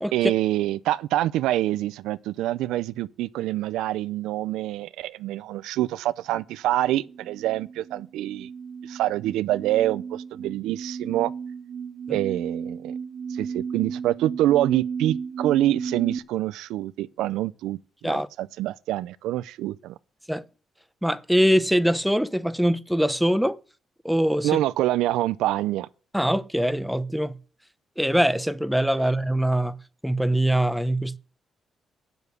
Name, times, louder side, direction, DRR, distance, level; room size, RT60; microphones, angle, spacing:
voice 1, 0.1-8.5 8.8-11.3 12.1-12.9 13.3-19.9 24.4-25.9 29.0-29.1, right 14 dB, 90° right, 0.5 m, -26 dB
sound 1, 7.0-16.2, right 6 dB, 60° right, 1.8 m, -34 dB
voice 2, 21.0-23.6 24.0-24.6 26.1-27.4 28.0-31.2, equal, ahead, 0.8 m, -23 dB
7.9 x 7.1 x 8.3 m
supercardioid pair, 70°, 0 cm